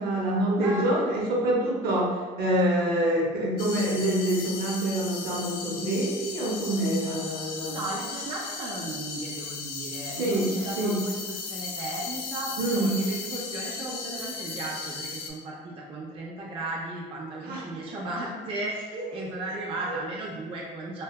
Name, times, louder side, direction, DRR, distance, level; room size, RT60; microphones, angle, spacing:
voice 1, 0.0-7.9 10.1-11.0 12.6-13.0 17.4-17.7 18.9-19.3 19.9-20.0, right 1 dB, 65° right, -3 dB, 0.7 m, -26 dB
voice 2, 0.6-1.1 7.7-21.0, right 2 dB, 30° right, -3 dB, 0.3 m, -35 dB
sound 1, 3.6-15.3, left 4 dB, 65° left, 0.4 m, -36 dB
2.6 x 2.2 x 2.2 m, 1.3 s
cardioid pair, 110°, 17 cm